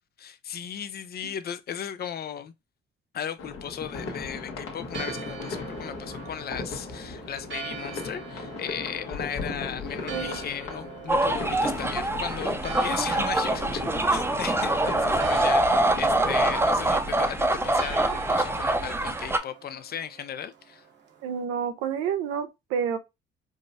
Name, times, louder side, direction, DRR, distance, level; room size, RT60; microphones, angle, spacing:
voice 1, 0.2-2.5 3.1-13.8 14.1-20.8, left 9 dB, 50° left, 0.5 m, -36 dB
sound 1, 3.4-17.4, left 3 dB, 70° left, 1.3 m, -37 dB
Church bell, 4.8-21.4, right 7 dB, 55° right, 1.0 m, -44 dB
voice 2, 10.0-10.4 21.2-23.0, right 7 dB, 90° right, 0.7 m, -29 dB
sound 2, 11.1-19.4, right 2 dB, 10° right, 0.7 m, -24 dB
4.8 x 2.1 x 2.7 m
supercardioid pair, 80°, 21 cm